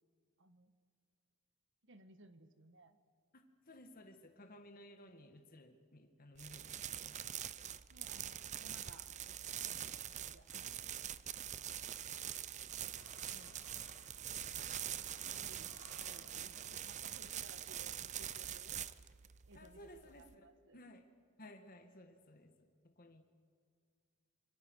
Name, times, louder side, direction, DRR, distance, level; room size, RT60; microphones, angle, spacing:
voice 1, 0.4-0.7 1.8-3.0 7.9-10.7 15.2-15.7 16.0-18.8 19.5-19.9 20.2-20.8, right 2 dB, 55° right, 10 dB, 1.4 m, -61 dB
voice 2, 3.3-7.2 13.3-13.6 19.5-20.5 20.7-21.1 21.4-23.3, left 1 dB, 40° left, 6 dB, 1.7 m, -57 dB
sound 1, 6.4-20.3, right 10 dB, 35° right, 0.6 m, -44 dB
sound 2, 11.8-12.0 12.4-17.1, left 4 dB, 85° left, 4.5 m, -63 dB
25.5 x 24.5 x 6.3 m, 2.1 s
head